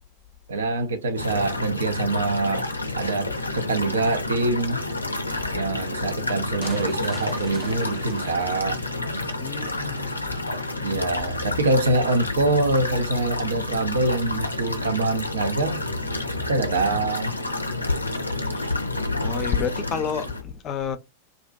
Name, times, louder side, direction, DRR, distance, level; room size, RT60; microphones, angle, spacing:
voice 1, 0.5-2.7 2.9-4.8 5.5-8.8 10.8-15.8 16.5-17.4 19.6-19.7, right 2 dB, 65° right, 0.5 m, -25 dB
sound 1, 1.2-20.4, left 2 dB, 85° left, 0.5 m, -29 dB
sound 2, 6.6-9.6, right 2 dB, 15° right, 0.6 m, -44 dB
voice 2, 9.4-10.3 18.5-18.8 19.2-21.0, left 7 dB, 30° left, 0.5 m, -30 dB
sound 3, 10.9-17.1, equal, 85° right, 1.4 m, -39 dB
2.5 x 2.1 x 2.4 m
figure-of-eight pair, 90°, 0 cm